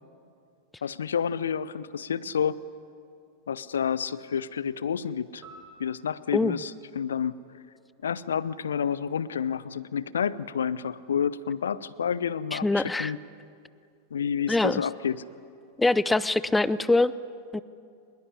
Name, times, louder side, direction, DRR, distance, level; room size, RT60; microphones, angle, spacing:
voice 1, 0.8-2.6 3.5-5.4 5.8-7.4 8.0-13.2 14.1-15.2, left 7 dB, 70° left, 18 dB, 0.6 m, -29 dB
sound 1, 5.4-7.9, right 2 dB, 20° right, 7.5 m, -53 dB
voice 2, 12.5-13.1 14.5-14.8 15.8-17.1 17.5-17.6, left 2 dB, 10° left, 18 dB, 0.6 m, -23 dB
23.0 x 21.0 x 9.9 m, 2.4 s
figure-of-eight pair, 90°, 0 cm